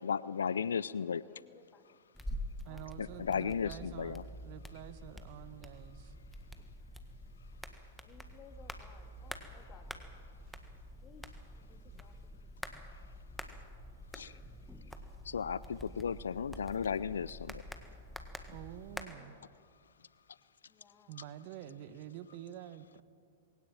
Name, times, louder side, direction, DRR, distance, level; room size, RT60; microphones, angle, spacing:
voice 1, 0.0-1.2 3.0-4.2 14.1-14.4 15.2-17.6, left 7 dB, 75° left, 19 dB, 0.4 m, -35 dB
voice 2, 0.6-2.0 2.6-2.8 3.1-3.5 8.0-10.1 11.0-12.3 19.0-19.6 20.7-21.1, left 6 dB, 30° left, 5 dB, 2.7 m, -60 dB
sound 1, 2.1-19.0, equal, ahead, 1.7 m, -47 dB
voice 3, 2.6-6.1 11.9-12.0 18.5-19.4 21.1-23.0, right 11 dB, 50° right, 12 dB, 1.3 m, -48 dB
21.5 x 17.5 x 9.0 m, 2.2 s
figure-of-eight pair, 105°, 0 cm